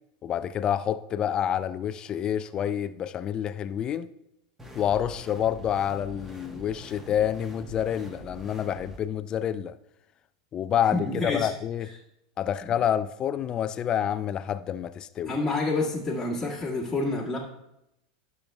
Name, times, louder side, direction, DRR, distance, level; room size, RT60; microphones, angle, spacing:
voice 1, 0.2-4.1 4.7-9.7 10.5-11.9 12.4-15.4, left 9 dB, 35° left, 0.4 m, -28 dB
sound 1, 4.6-9.0, right 1 dB, 15° right, 1.2 m, -45 dB
voice 2, 10.9-11.5 12.6-12.7 15.2-17.4, left 3 dB, 10° left, 1.7 m, -28 dB
12.5 x 6.8 x 2.3 m
hypercardioid pair, 110°, 2 cm